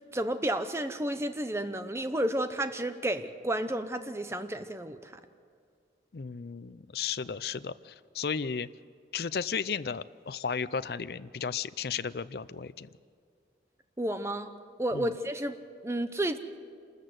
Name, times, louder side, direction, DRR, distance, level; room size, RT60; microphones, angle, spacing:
voice 1, 0.1-5.1 14.0-14.5 14.8-16.4, right 1 dB, 15° right, 9 dB, 0.8 m, -31 dB
voice 2, 6.1-8.7 9.1-12.9 14.9-15.1, left 6 dB, 60° left, 15 dB, 0.5 m, -34 dB
27.0 x 14.0 x 8.0 m, 2.3 s
head